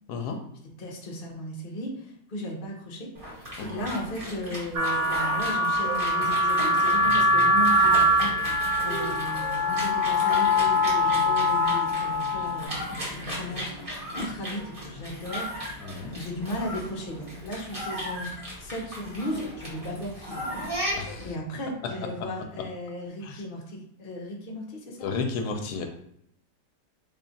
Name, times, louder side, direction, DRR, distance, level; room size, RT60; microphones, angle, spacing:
voice 1, 0.8-3.1 3.3-8.3 8.8-15.5 16.0-18.3 18.6-25.3, left 1 dB, 45° left, -1 dB, 0.7 m, -36 dB
sound 1, 3.1-21.3, equal, 25° right, 0.9 m, -36 dB
sound 2, 4.8-12.7, left 1 dB, 75° right, 1.5 m, -23 dB
voice 2, 15.8-16.1 21.0-21.3 23.2-23.4 25.0-25.9, left 4 dB, 75° left, 4 dB, 1.1 m, -32 dB
3.5 x 2.3 x 3.9 m, 0.73 s
omnidirectional pair, 1.8 m